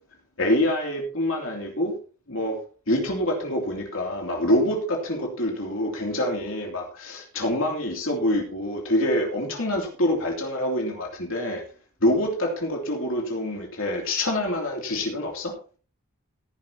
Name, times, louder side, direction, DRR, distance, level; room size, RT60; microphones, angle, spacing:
voice 1, 0.4-1.9 2.3-2.6 2.9-11.6 12.0-15.5, left 1 dB, 65° left, 0 dB, 3.0 m, -26 dB
17.0 x 11.0 x 2.9 m, 0.38 s
head